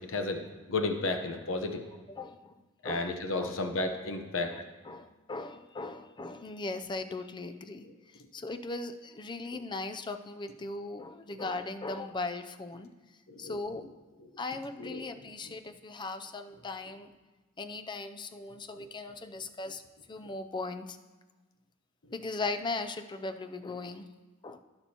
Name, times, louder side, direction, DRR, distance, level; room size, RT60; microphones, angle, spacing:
voice 1, 0.1-0.4 0.7-1.8 2.8-4.6 13.3-13.5 14.8-15.0, left 3 dB, 65° left, 5 dB, 0.9 m, -32 dB
voice 2, 2.1-2.5 2.8-3.6 4.5-7.9 8.3-12.9 13.4-13.9 14.4-17.1 17.6-19.8 20.1-21.0 22.1-24.1 24.4-24.6, left 3 dB, 20° left, 9 dB, 0.4 m, -38 dB
16.0 x 6.8 x 2.9 m, 1.2 s
head